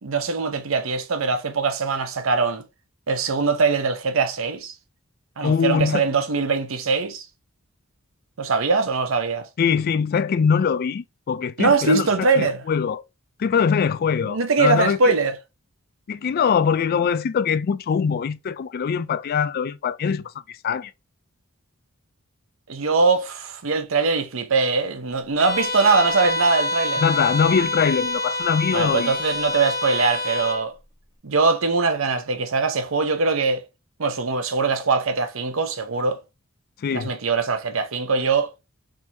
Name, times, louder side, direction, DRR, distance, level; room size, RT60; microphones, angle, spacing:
voice 1, 0.0-2.6 3.1-4.7 5.4-7.2 8.4-9.5 11.6-12.6 14.3-15.3 22.7-27.0 28.7-30.7 31.2-33.6 34.0-36.2 36.9-38.5, right 4 dB, 70° right, 0.7 m, -22 dB
voice 2, 5.4-6.0 9.6-13.0 13.4-15.2 16.1-20.9 27.0-29.1 36.8-37.2, left 6 dB, 45° left, 0.3 m, -22 dB
Bowed string instrument, 25.4-30.7, left 1 dB, 15° left, 1.3 m, -27 dB
4.5 x 3.6 x 2.7 m
head